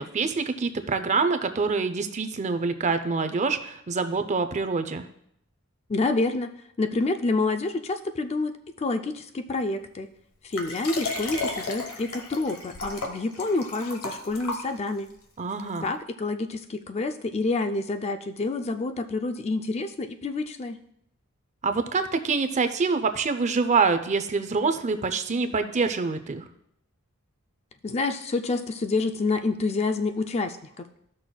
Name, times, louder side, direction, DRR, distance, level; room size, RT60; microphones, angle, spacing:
voice 1, 0.0-5.1 15.4-15.9 21.6-26.4, right 4 dB, 35° right, 9 dB, 0.5 m, -26 dB
voice 2, 5.9-6.5 6.8-8.5 8.8-10.1 10.4-15.1 15.8-20.8 27.8-30.9, left 3 dB, 30° left, 8 dB, 0.4 m, -28 dB
Liquid, 10.5-15.1 15.8-15.9, left 3 dB, 90° left, 1.2 m, -34 dB
14.0 x 6.1 x 2.3 m, 0.74 s
head